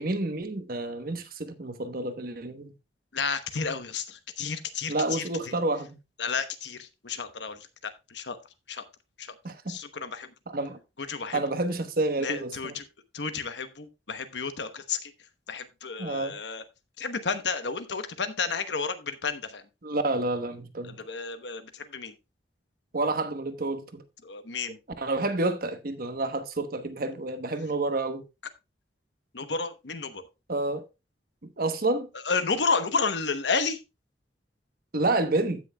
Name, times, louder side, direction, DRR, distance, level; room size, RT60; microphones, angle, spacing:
voice 1, 0.0-2.7 4.9-6.0 9.4-9.8 10.5-10.8 11.3-12.8 16.0-16.4 19.8-21.0 22.9-24.0 25.0-28.2 30.5-30.8 31.4-32.1 34.9-35.6, right 2 dB, 55° right, 1.1 m, -29 dB
voice 2, 3.1-5.5 6.2-8.4 8.7-8.8 9.2-9.3 9.7-10.3 11.0-11.4 12.2-12.8 13.1-15.1 15.5-16.6 17.0-19.6 20.8-22.1 24.2-24.8 29.3-30.2 32.2-33.8, left 5 dB, 75° left, 1.0 m, -31 dB
15.5 x 6.3 x 2.3 m
head